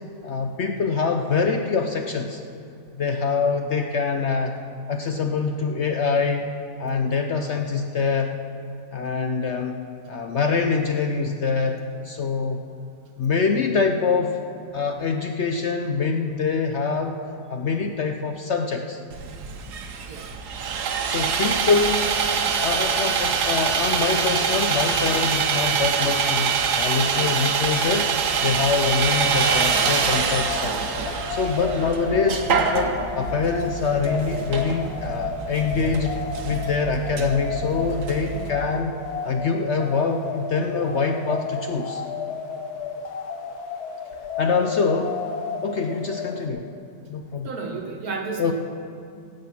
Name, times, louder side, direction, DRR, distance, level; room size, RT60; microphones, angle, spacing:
voice 1, 0.2-2.4 2.9-4.6 4.9-6.5 6.8-8.3 8.9-11.8 12.0-12.6 13.2-14.4 14.7-17.2 17.5-19.0 21.0-22.1 22.6-28.1 28.4-30.8 31.3-36.2 36.4-39.0 39.2-42.0 44.4-45.2 45.6-46.7 47.1-47.5 48.4-48.5, left 5 dB, 60° left, 4 dB, 0.8 m, -24 dB
Sawing, 19.1-38.5, right 6 dB, 85° right, 1.5 m, -25 dB
sound 1, 29.2-46.5, left 5 dB, 75° left, 1.5 m, -33 dB
voice 2, 47.4-48.5, right 4 dB, 65° right, 3 dB, 1.7 m, -31 dB
16.5 x 7.9 x 5.9 m, 2.5 s
omnidirectional pair, 1.7 m